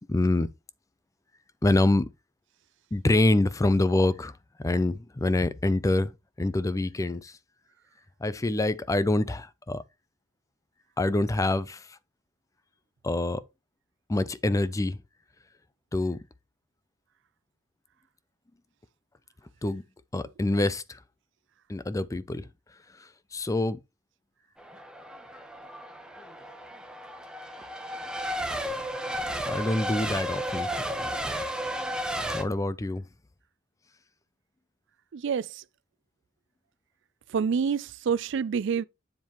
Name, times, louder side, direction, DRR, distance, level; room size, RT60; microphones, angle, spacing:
voice 1, 0.1-0.5 1.6-2.1 2.9-4.3 4.6-6.1 6.4-7.3 8.2-9.8 11.0-12.0 13.0-13.4 14.1-15.0 15.9-16.2 19.6-19.8 20.1-21.0 21.7-22.5 23.0-23.8 29.5-30.7 32.3-33.0, left 2 dB, 15° left, 0.4 m, -26 dB
Race car auto racing / Accelerating revving vroom / Mechanisms, 24.6-32.4, equal, 5° right, 1.1 m, -33 dB
voice 2, 35.1-35.4 37.3-38.8, right 6 dB, 65° right, 0.4 m, -27 dB
7.5 x 7.3 x 3.0 m
head